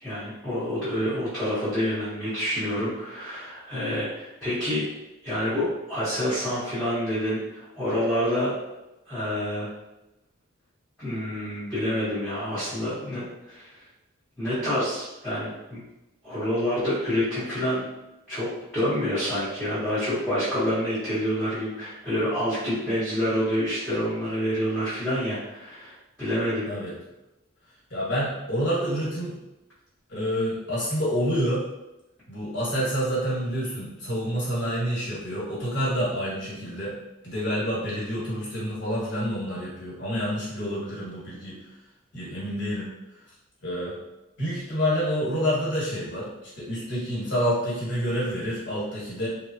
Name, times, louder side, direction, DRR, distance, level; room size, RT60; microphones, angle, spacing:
voice 1, 0.0-4.8 5.2-8.5 9.1-9.7 11.0-13.8 14.4-15.8 16.2-17.8 18.3-18.5 18.7-26.7, equal, ahead, -15 dB, 0.9 m, -27 dB
voice 2, 27.9-29.4 30.1-31.6 32.3-37.0 37.2-41.6 42.1-43.0 43.6-44.0 44.4-49.3, equal, 50° left, -7 dB, 1.2 m, -28 dB
3.3 x 2.0 x 2.6 m, 0.96 s
head